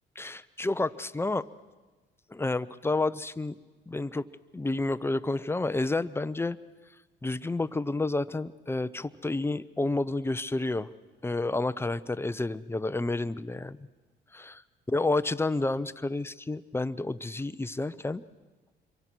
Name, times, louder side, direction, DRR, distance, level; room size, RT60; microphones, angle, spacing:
voice 1, 0.2-1.4 2.3-3.6 3.9-4.3 4.5-6.6 7.2-10.9 11.2-13.8 14.3-14.6 14.9-18.2, left 2 dB, 10° left, 14 dB, 0.7 m, -30 dB
27.0 x 23.5 x 6.2 m, 1.2 s
cardioid pair, 90°, 20 cm